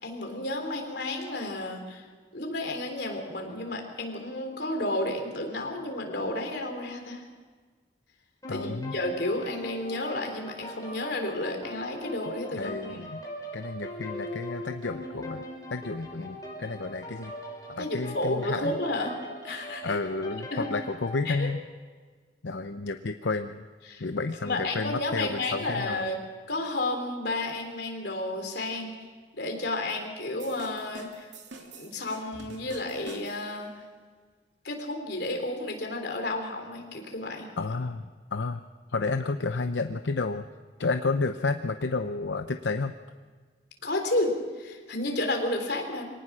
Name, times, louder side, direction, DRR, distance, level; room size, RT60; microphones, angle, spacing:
voice 1, 0.0-2.0 2.3-7.2 8.5-13.1 17.8-19.1 19.4-20.0 20.5-20.7 21.3-21.5 23.9-24.0 24.4-26.2 26.5-28.9 29.4-31.3 31.6-33.7 34.6-37.5 43.8-46.1, left 2 dB, 65° left, 3 dB, 3.8 m, -32 dB
sound 1, 8.4-21.2, equal, 20° left, 5.7 m, -41 dB
voice 2, 8.5-9.0 12.5-13.3 13.5-15.4 15.7-17.3 17.7-18.8 19.8-21.6 22.4-23.6 24.0-26.1 37.6-38.1 38.3-38.6 38.9-40.5 40.8-42.9, left 3 dB, 85° left, 8 dB, 0.7 m, -31 dB
sound 2, 30.4-33.6, right 2 dB, 85° right, 2.5 m, -46 dB
24.5 x 18.5 x 6.3 m, 1.5 s
head